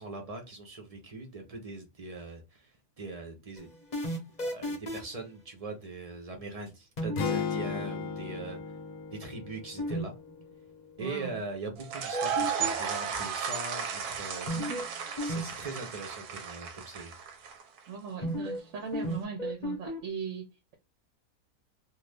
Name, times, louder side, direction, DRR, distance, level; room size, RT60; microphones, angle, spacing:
voice 1, 0.0-3.7 4.4-8.6 9.1-10.1 11.0-14.5 15.2-17.2, right 3 dB, 40° right, 0.5 m, -41 dB
sound 1, 3.6-5.2 7.0-7.4 9.8-10.0 10.3-10.4 12.1-12.9 14.5-14.9 15.2-15.4 15.7-15.8 18.2-18.6 18.9-20.0, equal, 35° left, 0.8 m, -33 dB
sound 2, 7.2-11.3, left 6 dB, 75° left, 1.1 m, -36 dB
voice 2, 11.0-11.4 14.5-14.8 17.9-20.7, right 6 dB, 60° right, 0.9 m, -39 dB
sound 3, 11.8-17.8, right 7 dB, 90° right, 1.1 m, -34 dB
2.6 x 2.5 x 3.3 m
omnidirectional pair, 1.6 m